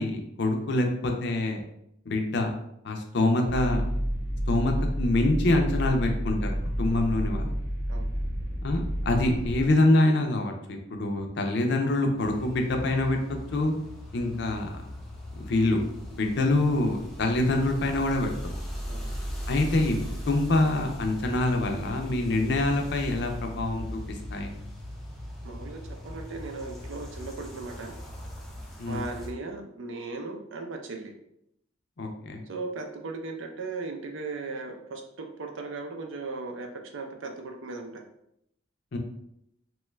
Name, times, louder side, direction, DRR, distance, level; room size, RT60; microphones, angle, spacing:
voice 1, 0.0-1.6 2.1-2.5 2.8-3.8 4.5-6.5 6.8-7.5 8.6-13.7 14.1-14.7 15.4-15.8 16.1-18.3 19.5-20.0 20.3-23.8 24.3-24.5 28.8-29.1 32.0-32.4 38.9-39.0, left 2 dB, 60° left, 3 dB, 0.5 m, -25 dB
sound 1, 3.5-9.7, equal, 15° right, 0.9 m, -30 dB
sound 2, 12.2-29.3, equal, ahead, 0.4 m, -39 dB
voice 2, 25.4-28.0 28.9-31.1 32.5-38.0, right 3 dB, 75° right, 3 dB, 0.5 m, -37 dB
3.0 x 2.3 x 3.1 m, 0.77 s
head